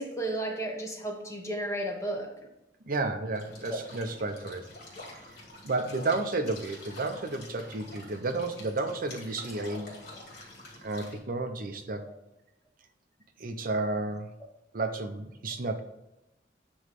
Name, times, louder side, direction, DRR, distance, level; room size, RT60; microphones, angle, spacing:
voice 1, 0.0-2.3 3.7-3.8, right 1 dB, 15° left, 1 dB, 1.2 m, -33 dB
voice 2, 2.9-4.6 5.1-5.2 5.6-9.9 10.8-12.0 13.4-14.3 14.7-15.8, right 3 dB, 50° right, 6 dB, 0.7 m, -32 dB
sound 1, 3.3-11.2, left 2 dB, 55° left, 2.5 m, -47 dB
9.5 x 3.2 x 5.2 m, 0.90 s
head